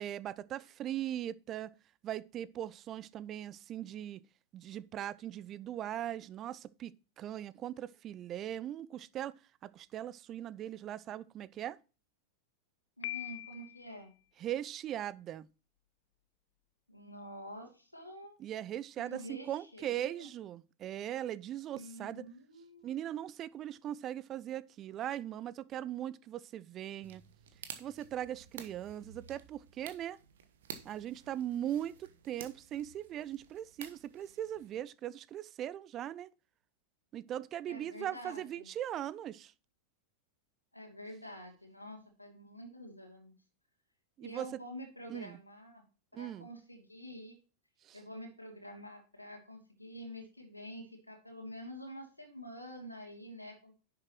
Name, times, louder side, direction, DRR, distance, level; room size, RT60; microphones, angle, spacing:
voice 1, 0.0-1.7 2.0-4.2 4.5-9.4 9.6-11.8 14.4-15.5 18.4-22.2 22.8-27.2 27.8-30.2 30.8-36.3 37.1-39.5 44.2-44.5 45.1-45.4 46.1-46.5 47.8-48.0, right 11 dB, 30° right, 0.5 m, -39 dB
voice 2, 13.0-14.2 16.9-18.4 19.0-20.3 21.7-22.9 37.7-38.7 40.7-43.3 44.2-45.8 46.1-47.4 47.9-53.7, equal, 85° left, 2.8 m, -48 dB
Piano, 13.0-14.0, left 17 dB, 55° left, 0.4 m, -42 dB
sound 1, 27.0-34.8, right 8 dB, 60° right, 1.2 m, -52 dB
10.5 x 7.5 x 3.0 m
figure-of-eight pair, 90°, 0 cm